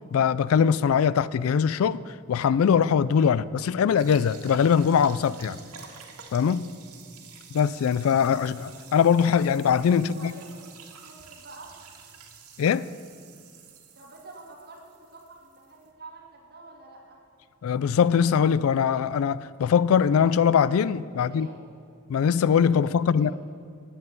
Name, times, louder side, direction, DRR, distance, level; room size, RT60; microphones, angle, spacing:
voice 1, 0.1-5.6 6.3-6.7 7.5-10.3 12.6-12.9 17.6-21.5 22.1-23.3, left 7 dB, 65° left, 0.3 m, -22 dB
sound 1, 4.0-15.9, right 6 dB, 85° right, 1.7 m, -48 dB
voice 2, 10.0-10.7 11.0-11.7 14.0-17.2 21.1-21.6 22.8-23.4, right 3 dB, 45° right, 2.5 m, -48 dB
9.3 x 7.9 x 9.2 m
head